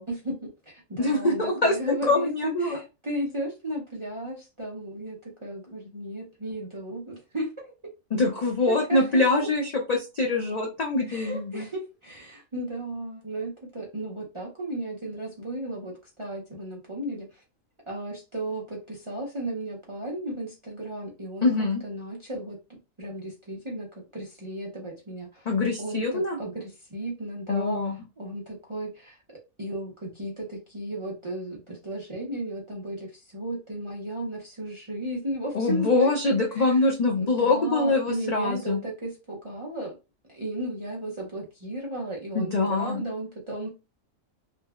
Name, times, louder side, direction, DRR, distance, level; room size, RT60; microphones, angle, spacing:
voice 1, 0.1-7.7 8.7-9.5 11.1-17.4 17.9-21.5 21.8-25.5 25.8-27.8 28.2-36.8 37.2-39.9 40.3-43.7, right 1 dB, 45° right, -2 dB, 0.4 m, -35 dB
voice 2, 1.0-2.8 8.1-11.6 21.4-21.8 25.5-26.4 27.5-27.9 35.5-38.8 42.3-43.0, left 2 dB, 75° left, 0 dB, 0.3 m, -24 dB
3.2 x 2.1 x 2.2 m, 0.28 s
omnidirectional pair, 1.4 m